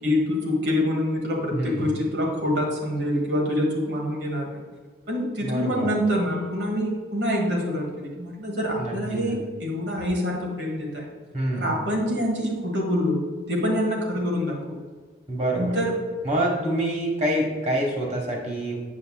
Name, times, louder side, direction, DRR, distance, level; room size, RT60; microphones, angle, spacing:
voice 1, 0.0-4.6 5.1-11.1 11.5-13.2 13.5-14.8 15.5-15.9, left 1 dB, 80° right, -1 dB, 1.5 m, -26 dB
voice 2, 1.5-2.0 5.4-6.0 8.8-9.4 11.3-11.8 15.3-15.8 16.2-18.8, right 1 dB, 40° right, -1 dB, 1.2 m, -27 dB
8.3 x 5.2 x 2.3 m, 1.4 s
head